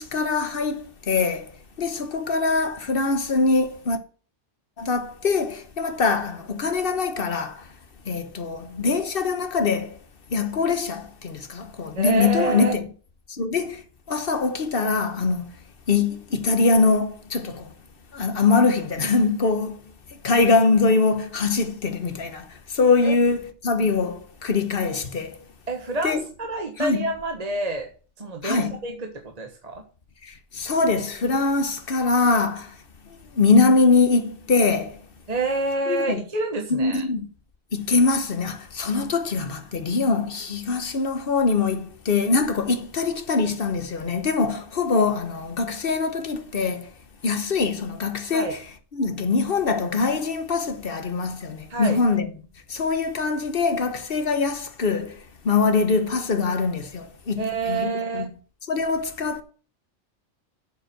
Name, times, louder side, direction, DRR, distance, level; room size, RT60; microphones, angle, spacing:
voice 1, 0.0-1.5 1.8-4.0 4.8-7.7 8.0-10.0 10.3-12.8 13.3-15.6 15.9-17.7 18.1-19.8 20.1-25.4 26.0-26.2 26.8-27.1 28.4-28.8 30.2-32.8 33.3-35.0 35.9-36.2 36.7-37.3 37.7-46.9 47.2-48.6 48.9-52.3 52.7-58.2 58.7-59.4, left 4 dB, 50° left, 1.3 m, -23 dB
voice 2, 11.9-12.8 23.0-23.1 25.7-27.9 28.2-29.8 35.3-37.0 48.3-48.5 51.7-52.0 57.4-58.3, right 3 dB, 35° right, 1.4 m, -27 dB
7.5 x 7.2 x 7.7 m
omnidirectional pair, 1.2 m